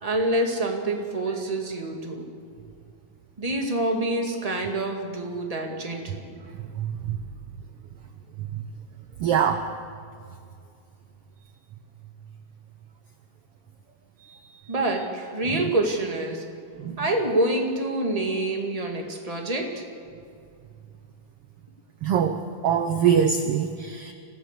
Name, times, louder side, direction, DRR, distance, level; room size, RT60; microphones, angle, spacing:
voice 1, 0.0-2.3 3.4-6.2 14.7-16.4 17.0-19.8, right 1 dB, 15° right, 2 dB, 1.9 m, -26 dB
voice 2, 6.8-7.2 9.2-9.6 16.8-17.0 22.0-24.1, right 7 dB, 75° right, 7 dB, 1.4 m, -23 dB
25.0 x 16.0 x 6.8 m, 2.3 s
omnidirectional pair, 3.6 m